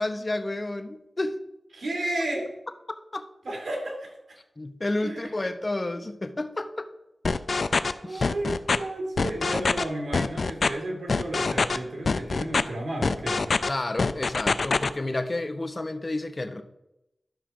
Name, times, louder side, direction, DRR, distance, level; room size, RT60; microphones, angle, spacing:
voice 1, 0.0-1.4 3.1-3.3 4.6-6.9 8.0-8.3 13.7-16.6, left 2 dB, 35° left, 8 dB, 0.8 m, -30 dB
voice 2, 1.7-2.5 3.4-4.2 5.0-5.3 8.0-13.6, right 1 dB, 75° right, 0 dB, 2.7 m, -32 dB
sound 1, 7.2-7.9 8.2-8.8 9.2-9.8 10.1-10.7 11.1-11.8 12.1-12.6 13.0-13.7 14.0-14.9, left 4 dB, 65° left, 0.4 m, -24 dB
12.0 x 4.4 x 6.1 m, 0.91 s
cardioid pair, 50°, 0 cm